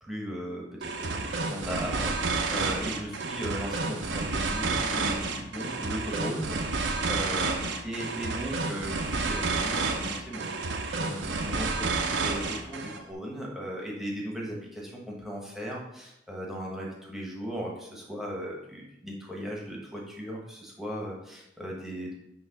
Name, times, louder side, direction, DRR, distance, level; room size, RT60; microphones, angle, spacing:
voice 1, 0.0-0.6 1.0-22.1, equal, ahead, -3 dB, 1.3 m, -37 dB
sound 1, 0.8-13.0, right 3 dB, 65° right, 0.8 m, -30 dB
8.8 x 3.0 x 5.9 m, 0.85 s
head